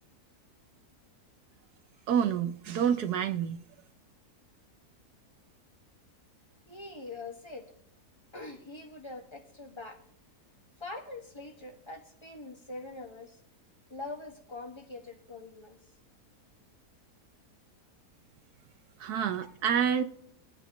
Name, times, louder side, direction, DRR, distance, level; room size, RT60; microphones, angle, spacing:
voice 1, 2.1-3.6 19.0-20.0, right 8 dB, 75° right, 8 dB, 1.2 m, -28 dB
voice 2, 6.7-7.7 8.3-10.0 10.8-13.4 13.9-15.8 19.4-19.5, left 2 dB, 20° left, 4 dB, 1.6 m, -43 dB
23.0 x 8.9 x 3.0 m, 0.75 s
omnidirectional pair, 1.7 m